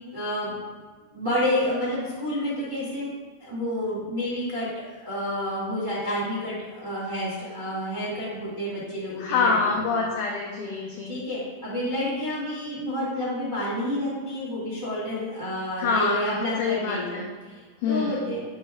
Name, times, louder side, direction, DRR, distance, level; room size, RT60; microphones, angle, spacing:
voice 1, 0.1-0.5 1.1-3.1 3.4-10.0 11.0-18.4, left 1 dB, 45° right, -10 dB, 0.6 m, -29 dB
voice 2, 9.2-11.2 15.8-17.3 17.8-18.3, left 4 dB, 90° left, 0 dB, 1.7 m, -26 dB
8.0 x 5.2 x 3.5 m, 1.4 s
omnidirectional pair, 4.5 m